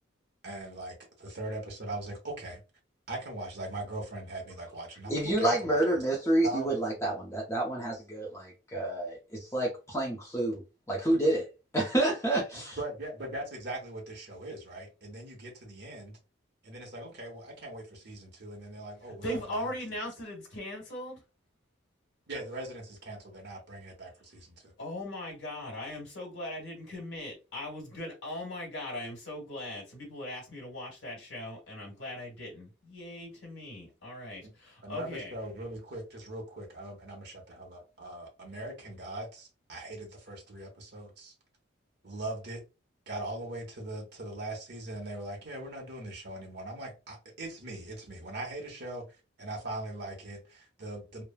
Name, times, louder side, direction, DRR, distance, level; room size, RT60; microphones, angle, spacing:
voice 1, 0.4-2.6 3.1-6.0 6.4-6.8 12.5-16.1 16.6-19.7 22.3-24.7 34.8-41.3 42.0-42.6 43.1-49.1 49.4-51.2, right 2 dB, 55° right, 1.0 m, -40 dB
voice 2, 5.1-12.8, right 1 dB, 15° left, 0.6 m, -29 dB
voice 3, 19.2-21.2 24.8-35.3, left 1 dB, 65° left, 1.5 m, -39 dB
3.2 x 2.1 x 2.3 m
head